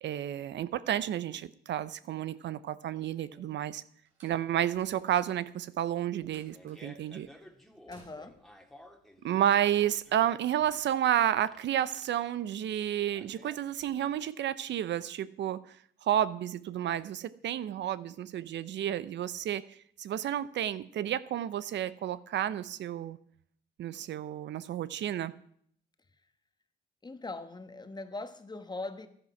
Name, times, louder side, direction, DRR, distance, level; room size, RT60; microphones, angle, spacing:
voice 1, 0.0-3.8 4.2-7.3 9.2-15.8 16.0-19.6 20.0-23.2 23.8-25.3, right 11 dB, 65° right, 0.6 m, -31 dB
Slam, 4.1-5.4 6.3-7.2 7.9-8.5, right 4 dB, 80° right, 4.1 m, -61 dB
Fart, 6.2-14.2, left 1 dB, ahead, 1.8 m, -56 dB
voice 2, 7.9-8.4 27.0-29.1, left 3 dB, 20° left, 1.3 m, -41 dB
11.5 x 10.0 x 5.9 m
cardioid pair, 90°, 20 cm